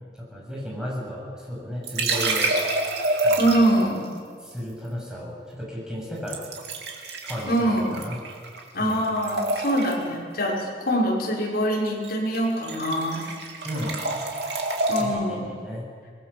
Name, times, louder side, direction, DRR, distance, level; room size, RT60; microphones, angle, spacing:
voice 1, 0.1-2.5 3.2-3.7 4.4-6.5 7.2-8.2 8.8-9.0 13.6-14.0 15.0-15.9, equal, 5° right, -4 dB, 7.7 m, -34 dB
sound 1, 1.8-3.9 6.3-8.6 8.9-10.1 11.9-12.1 12.3-15.0, right 2 dB, 65° right, 3.3 m, -27 dB
voice 2, 3.4-4.1 7.5-8.0 8.7-13.2 14.9-15.5, right 1 dB, 55° left, -4 dB, 6.2 m, -24 dB
26.0 x 20.5 x 7.3 m, 2.1 s
head